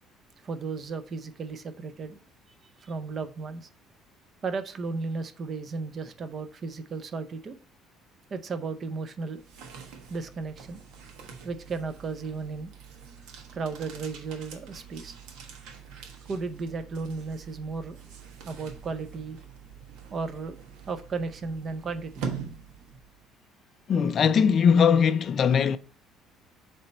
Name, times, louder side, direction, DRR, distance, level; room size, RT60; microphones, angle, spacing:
voice 1, 0.4-2.2 2.8-3.7 4.4-7.6 8.3-9.4 10.1-10.8 11.4-12.7 13.5-15.2 16.3-18.0 18.5-19.4 20.1-20.6 20.9-22.2, right 4 dB, 30° right, 0.6 m, -34 dB
sound 1, 9.3-23.3, right 6 dB, 90° right, 1.2 m, -44 dB
voice 2, 23.9-25.8, left 7 dB, 35° left, 0.3 m, -20 dB
7.0 x 3.3 x 4.2 m
cardioid pair, 165°, 0 cm